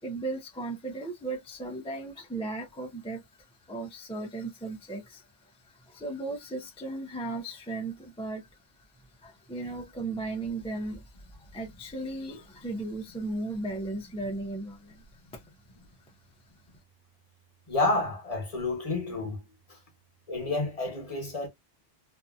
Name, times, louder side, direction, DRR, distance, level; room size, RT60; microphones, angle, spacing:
voice 1, 0.0-15.4, right 2 dB, 10° left, 0.4 m, -36 dB
voice 2, 17.7-19.4 19.7-19.8 20.3-21.5, left 2 dB, 35° left, 1.0 m, -29 dB
2.7 x 2.6 x 2.4 m
omnidirectional pair, 1.1 m